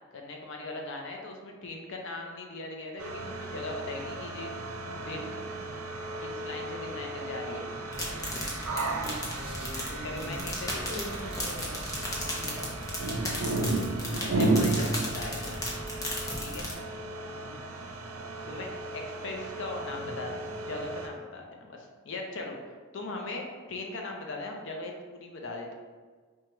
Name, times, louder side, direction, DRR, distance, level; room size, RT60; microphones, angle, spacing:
voice 1, 0.1-4.5 5.0-5.4 6.2-7.7 10.0-11.0 14.2-15.5 16.4-16.7 18.5-18.7 18.9-22.6 22.9-23.4 23.7-25.7, left 2 dB, 60° left, 1 dB, 0.5 m, -39 dB
sound 1, 3.0-21.1, right 2 dB, 85° right, 0.5 m, -34 dB
voice 2, 7.6-8.0 8.9-10.5 10.8-11.9 12.3-12.8 17.2-17.7, equal, 50° right, -3 dB, 0.8 m, -43 dB
sound 2, 7.9-16.7, left 1 dB, 15° left, 0.6 m, -36 dB
sound 3, 8.4-14.1, right 2 dB, 30° right, 1.0 m, -49 dB
4.5 x 2.3 x 2.9 m, 1.5 s
head